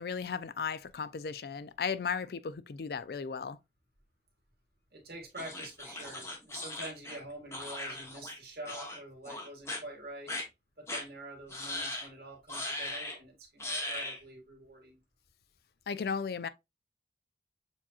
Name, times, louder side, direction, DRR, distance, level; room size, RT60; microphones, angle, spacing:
voice 1, 0.0-3.6 15.9-16.5, left 6 dB, 60° left, 0.4 m, -35 dB
voice 2, 4.9-10.3 10.8-15.0, right 1 dB, 60° right, 2.0 m, -46 dB
sound 1, 5.4-8.4 8.6-9.0 9.2-9.8 10.3-10.4 10.9-11.0 11.5-12.1 12.5-13.2 13.6-14.2, left 1 dB, 15° left, 0.9 m, -38 dB
7.0 x 2.9 x 2.3 m
head